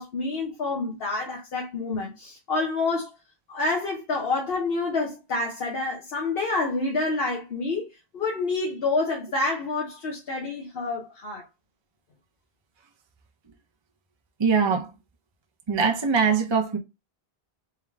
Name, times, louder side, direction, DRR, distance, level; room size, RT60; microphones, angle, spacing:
voice 1, 0.0-3.1 3.5-7.9 8.1-11.4, left 3 dB, 65° left, 1.1 m, -28 dB
voice 2, 14.4-14.9 15.7-16.8, right 5 dB, 35° right, 0.6 m, -22 dB
3.5 x 3.3 x 3.5 m
omnidirectional pair, 1.0 m